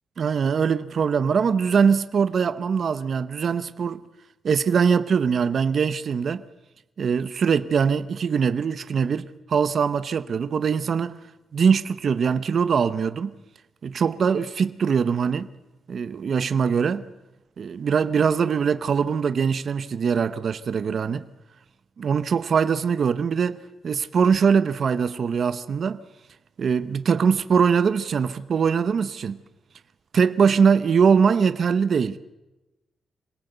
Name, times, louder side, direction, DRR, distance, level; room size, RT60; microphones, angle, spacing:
voice 1, 0.2-4.0 4.4-6.4 7.0-11.2 11.5-13.3 13.8-15.5 15.9-17.1 17.6-21.3 22.0-26.0 26.6-29.4 30.1-32.2, right 6 dB, 45° right, 0.8 m, -22 dB
26.0 x 17.5 x 8.0 m
wide cardioid pair, 170°, 0 cm